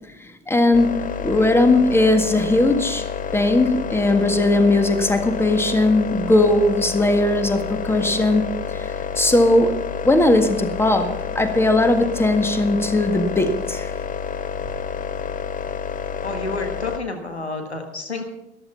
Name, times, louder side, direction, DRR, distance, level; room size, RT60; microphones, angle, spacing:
voice 1, 0.2-0.9 1.2-3.0 3.3-9.7 10.0-11.1 11.3-13.9, left 2 dB, 5° left, 7 dB, 1.7 m, -18 dB
sound 1, 0.7-17.0, left 7 dB, 25° left, 0.9 m, -29 dB
voice 2, 16.2-18.2, left 3 dB, 90° left, 4 dB, 1.6 m, -29 dB
13.5 x 12.5 x 5.6 m, 0.85 s
figure-of-eight pair, 65°, 32 cm